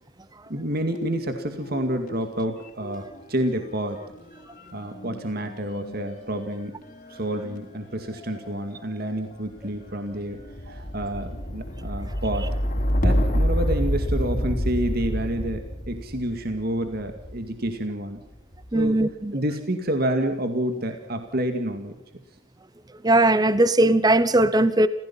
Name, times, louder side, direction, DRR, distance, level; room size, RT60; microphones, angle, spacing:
voice 1, 0.5-4.0 4.7-6.8 7.1-10.4 10.6-12.6 13.0-15.6 15.9-18.2 18.7-19.0 19.3-21.9, right 1 dB, 45° right, 6 dB, 2.2 m, -29 dB
sound 1, 0.9-2.3 2.5-17.6 18.3-18.9, equal, 40° left, 3.9 m, -29 dB
voice 2, 18.7-19.3 23.0-24.9, right 1 dB, 20° right, 14 dB, 0.8 m, -19 dB
29.0 x 16.0 x 5.6 m, 0.81 s
head